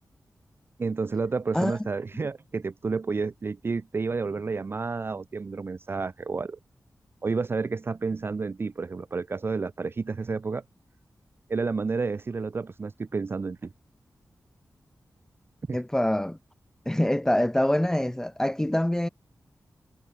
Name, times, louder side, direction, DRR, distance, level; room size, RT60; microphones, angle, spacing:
voice 1, 0.8-6.6 7.2-10.6 11.5-13.7 15.7-15.8, right 4 dB, 40° right, 0.5 m, -30 dB
voice 2, 15.7-16.4 16.9-19.1, left 1 dB, 10° left, 1.0 m, -25 dB
wide cardioid pair, 115°, 6 cm